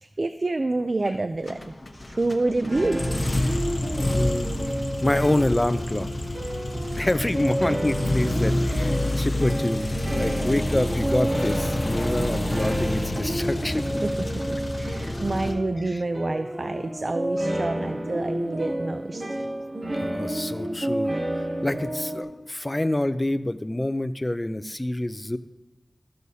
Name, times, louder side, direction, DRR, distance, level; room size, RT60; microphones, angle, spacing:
voice 1, 0.0-1.8 2.1-3.0 6.7-7.0 12.2-12.6 14.0-14.1 14.5-19.5, right 2 dB, 60° right, 9 dB, 0.3 m, -28 dB
sound 1, 1.5-15.5, left 1 dB, 50° left, 1.0 m, -28 dB
sound 2, 2.7-22.2, right 1 dB, 85° right, 2.4 m, -30 dB
voice 2, 4.0-4.7 5.0-6.1 6.9-14.0 20.0-21.2 21.6-25.4, left 1 dB, 30° left, 11 dB, 0.5 m, -27 dB
13.5 x 6.4 x 2.8 m, 1.0 s
cardioid pair, 40°, 0 cm